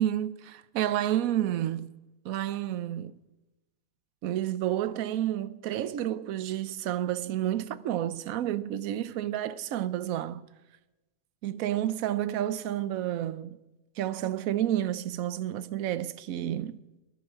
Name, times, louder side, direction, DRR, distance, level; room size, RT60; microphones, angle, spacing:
voice 1, 0.0-1.9 2.2-3.1 4.2-10.4 11.4-13.6 14.0-16.8, right 12 dB, 65° right, 1.0 m, -30 dB
19.5 x 11.5 x 5.0 m
omnidirectional pair, 1.8 m